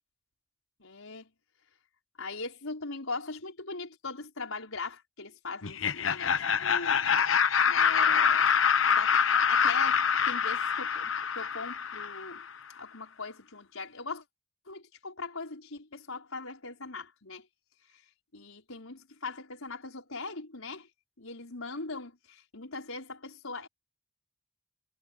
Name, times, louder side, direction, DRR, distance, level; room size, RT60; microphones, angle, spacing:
voice 1, 0.8-1.3 2.2-7.1 7.6-8.5 8.9-12.4 12.8-14.2 14.7-17.5 17.9-18.0 18.3-20.9 21.2-23.7, left 3 dB, 90° left, 5.2 m, -40 dB
Laughter, 5.6-12.4, left 7 dB, 70° left, 1.0 m, -25 dB
head